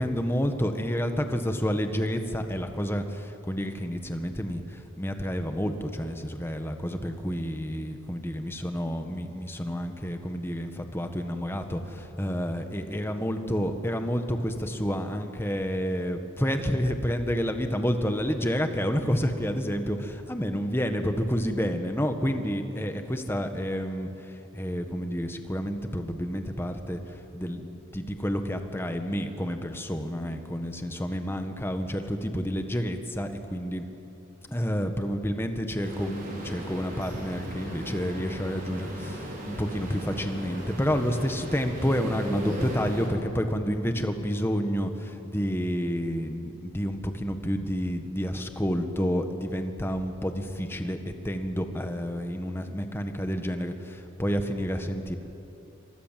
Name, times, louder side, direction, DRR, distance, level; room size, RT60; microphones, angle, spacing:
voice 1, 0.0-27.0 27.3-33.9 34.5-55.2, equal, 10° left, 6 dB, 1.6 m, -29 dB
sound 1, 35.8-43.1, equal, 45° right, 5.6 m, -37 dB
28.5 x 26.0 x 7.7 m, 2.9 s
head